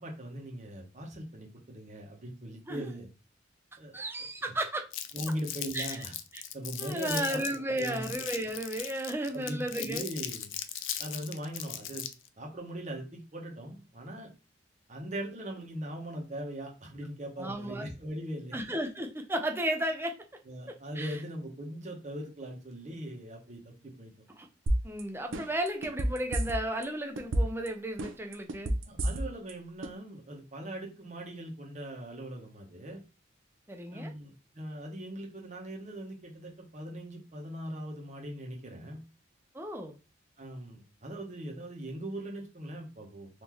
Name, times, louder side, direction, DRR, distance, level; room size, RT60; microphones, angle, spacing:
voice 1, 0.0-3.1 3.8-4.0 5.1-6.1 6.5-7.4 7.8-8.1 9.3-10.5 11.0-12.0 12.4-14.3 14.9-18.6 20.5-24.1 28.9-33.0 33.9-39.0 40.4-43.4, right 1 dB, 40° right, 1.0 m, -40 dB
voice 2, 3.9-4.8 5.7-6.0 6.3-6.4 6.8-10.0 17.4-17.9 18.5-20.2 20.7-21.2 24.3-24.5 24.8-28.7 33.7-34.1 39.5-39.9, right 1 dB, 10° right, 0.5 m, -34 dB
Crumpling crinkling, 4.9-12.3, left 11 dB, 80° left, 0.4 m, -39 dB
sound 1, 24.7-25.0 25.3-26.8 27.2-27.7 28.0-29.5 29.8-29.9, right 1 dB, 90° right, 0.6 m, -28 dB
3.7 x 2.7 x 3.0 m
head